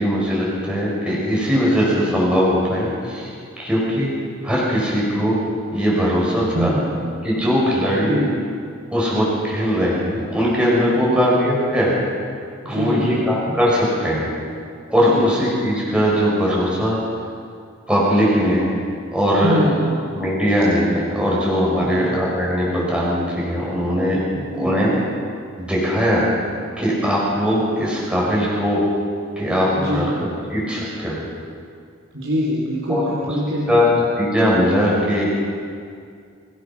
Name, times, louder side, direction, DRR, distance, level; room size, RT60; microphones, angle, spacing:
voice 1, 0.0-3.3 3.6-4.1 4.4-5.4 5.7-8.2 8.9-11.9 12.6-14.3 14.9-17.0 17.9-18.6 19.1-24.2 24.6-24.9 25.6-26.2 26.8-28.8 29.4-30.1 30.5-31.2 32.9-33.3 33.7-33.9 34.2-35.2, equal, 5° right, -6 dB, 6.0 m, -20 dB
voice 2, 6.5-7.0 8.0-8.4 11.1-11.2 12.6-13.2 15.1-15.3 19.4-19.9 21.8-22.1 24.3-25.1 29.8-30.2 32.1-34.1, equal, 70° right, -4 dB, 3.8 m, -25 dB
25.5 x 18.5 x 6.1 m, 2.2 s
head